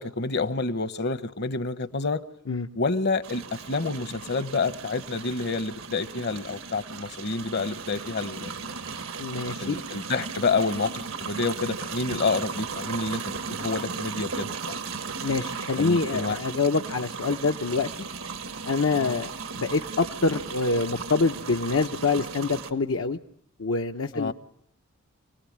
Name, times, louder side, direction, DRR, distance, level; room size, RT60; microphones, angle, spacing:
voice 1, 0.0-2.2 2.8-8.8 9.6-10.9 11.2-14.8 15.8-16.4 19.0-19.2 24.1-24.3, left 3 dB, 55° left, 12 dB, 1.1 m, -28 dB
sound 1, 3.2-22.7, right 5 dB, 90° right, 1.6 m, -36 dB
voice 2, 9.2-9.8 15.2-17.9 18.6-23.2 23.6-24.3, left 4 dB, 75° left, 2 dB, 0.9 m, -26 dB
28.0 x 19.0 x 8.7 m, 0.71 s
head